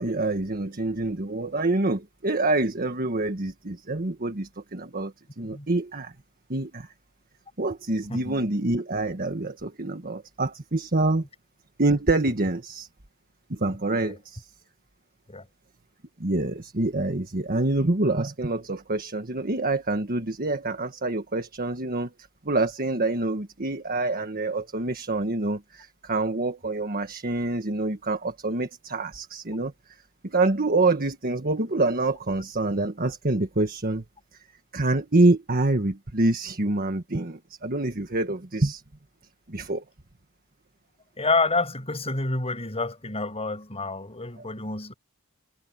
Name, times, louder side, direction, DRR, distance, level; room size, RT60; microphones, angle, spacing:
voice 1, 0.0-6.1 6.5-6.9 7.6-11.2 11.8-12.9 13.5-14.5 16.2-22.1 22.4-29.7 30.2-34.0 34.7-38.8 39.5-39.8, right 2 dB, 40° right, 1.6 m, -26 dB
voice 2, 8.1-8.4 14.0-14.2 15.3-15.4 41.2-44.9, left 3 dB, 30° left, 6.5 m, -28 dB
head